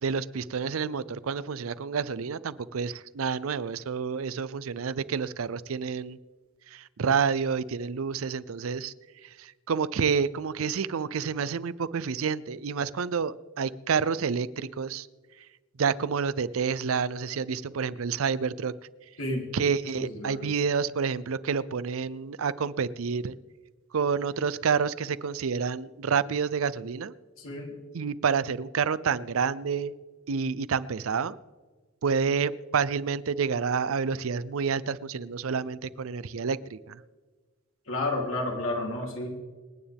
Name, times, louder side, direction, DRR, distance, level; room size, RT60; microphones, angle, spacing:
voice 1, 0.0-6.2 6.7-8.9 9.2-15.1 15.8-18.7 19.5-23.4 23.9-27.1 27.9-29.9 30.3-31.4 32.0-37.0, right 6 dB, 85° right, 18 dB, 0.5 m, -29 dB
voice 2, 19.9-20.5 27.4-27.7 37.9-39.3, left 2 dB, 80° left, 0 dB, 3.1 m, -31 dB
26.5 x 9.5 x 3.5 m, 1.4 s
head